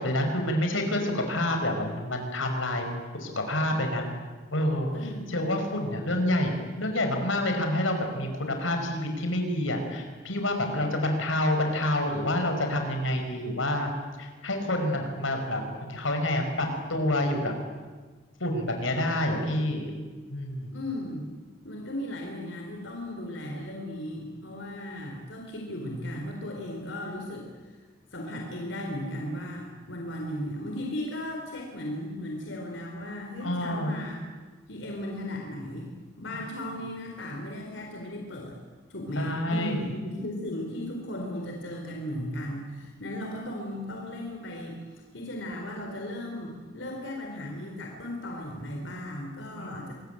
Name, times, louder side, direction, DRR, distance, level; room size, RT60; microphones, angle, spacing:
voice 1, 0.0-2.8 3.1-4.1 4.5-4.9 5.3-13.9 14.2-15.6 15.9-17.5 18.4-19.9 20.3-20.8 33.4-33.9 39.2-39.8 49.5-49.8, left 1 dB, 85° left, 4 dB, 5.2 m, -28 dB
voice 2, 4.9-5.5 20.7-21.3 21.6-27.5 28.1-34.3 34.7-35.9 36.2-38.6 38.9-44.8 45.1-49.9, left 1 dB, 70° left, 1 dB, 4.3 m, -36 dB
26.0 x 22.0 x 9.2 m, 1.4 s
head